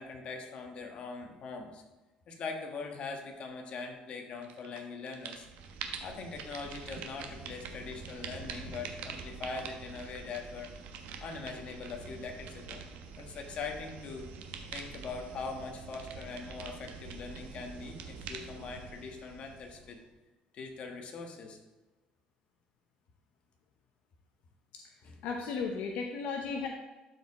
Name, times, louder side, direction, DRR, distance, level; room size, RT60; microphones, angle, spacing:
voice 1, 0.0-1.8 2.3-5.5 6.0-10.7 11.2-12.8 13.2-14.3 14.7-20.0 20.5-21.6 25.0-25.2, left 4 dB, 45° left, 3 dB, 1.4 m, -42 dB
sound 1, 4.4-4.8 5.1-20.1, right 5 dB, 80° right, 1.0 m, -45 dB
voice 2, 25.2-26.7, left 5 dB, 70° left, 3 dB, 0.7 m, -35 dB
11.5 x 4.8 x 3.6 m, 1.1 s
cardioid pair, 140°, 3 cm